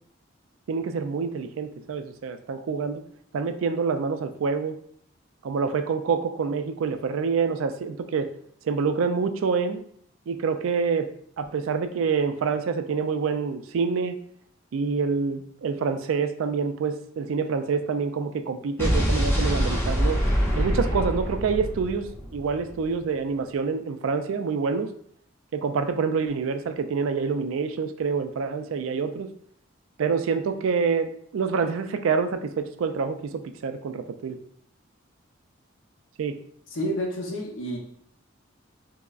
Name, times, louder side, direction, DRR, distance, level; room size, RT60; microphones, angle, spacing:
voice 1, 0.7-3.0 3.3-4.8 5.4-8.3 8.6-9.8 10.3-11.1 11.4-14.2 14.7-20.2 20.6-24.9 25.5-29.3 30.0-34.4 36.2-36.4, right 5 dB, 75° right, 9 dB, 0.3 m, -27 dB
Explosion, 18.8-22.9, equal, 10° left, 0.6 m, -25 dB
voice 2, 36.7-37.8, equal, 70° left, 0 dB, 0.7 m, -29 dB
4.6 x 2.0 x 2.4 m, 0.63 s
head